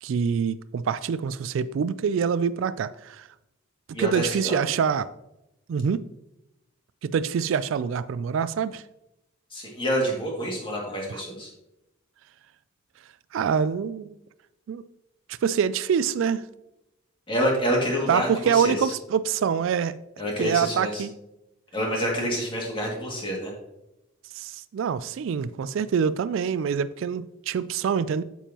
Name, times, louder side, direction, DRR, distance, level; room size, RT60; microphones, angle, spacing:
voice 1, 0.0-3.3 4.0-5.1 5.7-6.1 7.0-8.8 11.1-11.2 13.3-14.1 14.7-14.8 15.4-16.5 18.1-20.0 20.4-21.1 24.3-28.2, right 7 dB, 65° right, 0.3 m, -25 dB
voice 2, 3.9-4.6 9.5-11.5 17.3-18.9 20.2-21.0 21.7-23.5, equal, 25° left, 2.2 m, -27 dB
8.9 x 7.0 x 2.9 m
head